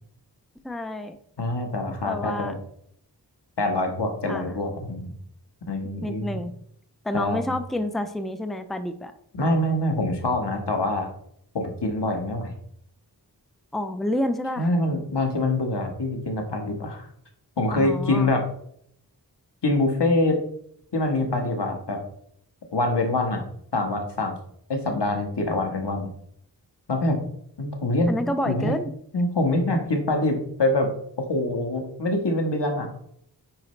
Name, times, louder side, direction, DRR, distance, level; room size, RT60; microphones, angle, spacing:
voice 1, 0.6-1.2 2.0-2.5 4.3-4.6 6.0-6.5 7.0-9.1 13.7-14.7 17.7-18.3 28.1-28.9, left 1 dB, ahead, 9 dB, 0.6 m, -29 dB
voice 2, 1.4-2.5 3.6-5.1 5.7-6.4 7.1-7.5 9.3-11.1 11.5-12.5 14.6-17.1 17.6-18.4 19.6-20.4 20.9-22.0 22.7-23.4 23.7-24.3 24.7-26.1 26.9-27.2 27.6-28.1 28.4-28.8 29.1-30.9 31.2-32.9, left 2 dB, 80° left, 3 dB, 1.5 m, -25 dB
8.8 x 5.1 x 3.3 m, 0.66 s
wide cardioid pair, 60°, 41 cm